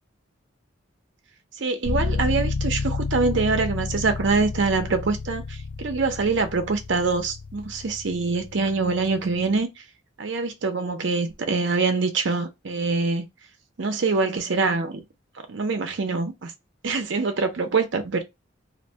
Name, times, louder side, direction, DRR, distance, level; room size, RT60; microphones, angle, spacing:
voice 1, 1.6-9.7 10.2-13.3 13.8-15.0 15.5-16.5 16.8-18.2, right 4 dB, 65° right, 0.5 m, -24 dB
sound 1, 1.8-9.6, left 3 dB, 60° left, 0.6 m, -31 dB
2.5 x 2.2 x 2.7 m
head